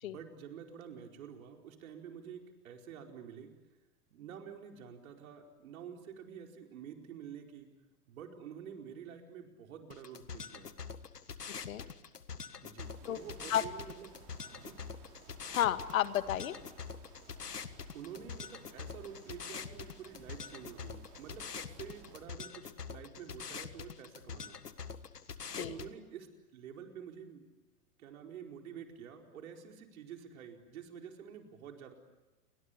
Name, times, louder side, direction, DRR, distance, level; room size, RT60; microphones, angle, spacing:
voice 1, 0.0-3.5 4.1-7.7 8.1-10.7 12.6-14.2 14.5-14.8 17.9-24.6 25.5-27.4 28.0-31.9, right 8 dB, 60° right, 3 dB, 4.8 m, -49 dB
sound 1, 9.9-25.9, left 6 dB, 85° left, 1.7 m, -45 dB
voice 2, 11.5-11.9 13.1-13.2 13.5-13.6 15.5-16.6 25.6-25.7, left 11 dB, 60° left, 12 dB, 1.8 m, -32 dB
sound 2, 12.8-22.2, right 7 dB, 45° right, 6.4 m, -59 dB
29.5 x 24.0 x 8.4 m, 1.1 s
hypercardioid pair, 105°, 46 cm